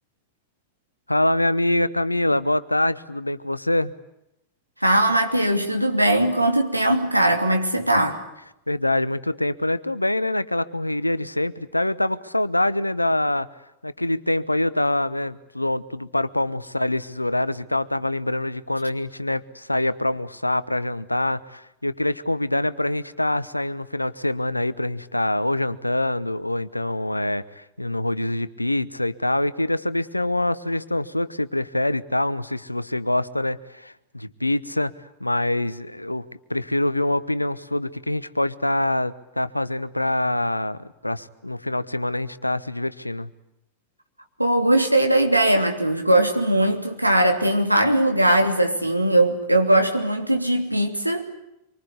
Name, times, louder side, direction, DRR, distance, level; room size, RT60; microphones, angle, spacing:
voice 1, 1.1-3.9 8.7-13.5 13.8-34.9 35.2-36.2 36.5-43.3, left 1 dB, 85° left, 16 dB, 1.0 m, -25 dB
voice 2, 4.8-8.2 44.4-51.2, right 1 dB, 90° right, 4 dB, 2.9 m, -20 dB
26.0 x 24.5 x 8.3 m, 0.86 s
figure-of-eight pair, 90°, 0 cm